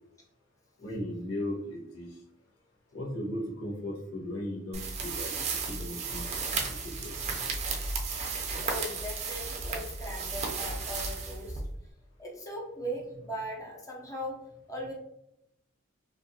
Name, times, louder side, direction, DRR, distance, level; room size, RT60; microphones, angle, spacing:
voice 1, 0.8-2.1 2.9-5.3 5.7-6.2 6.5-7.1, left 1 dB, 80° left, -4 dB, 1.0 m, -37 dB
sound 1, 4.7-11.9, right 4 dB, 35° right, 0.4 m, -34 dB
voice 2, 8.6-11.6 12.2-14.9, equal, 15° left, -2 dB, 0.6 m, -39 dB
2.6 x 2.3 x 2.7 m, 0.80 s
head